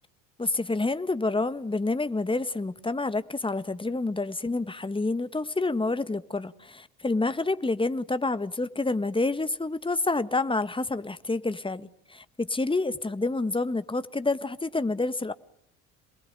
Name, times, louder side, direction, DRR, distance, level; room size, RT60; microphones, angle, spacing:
voice 1, 0.4-15.3, left 3 dB, 15° left, 1.6 m, -28 dB
28.0 x 20.5 x 9.3 m
hypercardioid pair, 60°, 40 cm